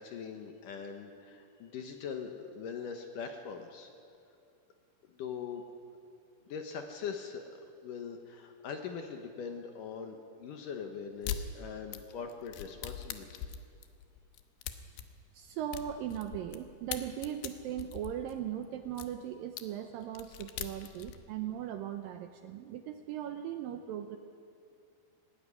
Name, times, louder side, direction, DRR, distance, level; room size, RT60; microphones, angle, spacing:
voice 1, 0.0-3.9 5.1-5.6 6.5-13.3, left 6 dB, 65° left, 5 dB, 2.3 m, -42 dB
sound 1, 11.2-11.4 11.9-16.6 16.9-19.1 19.6-19.7 20.0-21.2, left 10 dB, 85° left, 3.1 m, -41 dB
voice 2, 15.3-24.2, right 10 dB, 80° right, 7 dB, 2.1 m, -39 dB
18.5 x 15.5 x 9.8 m, 2.4 s
omnidirectional pair, 4.7 m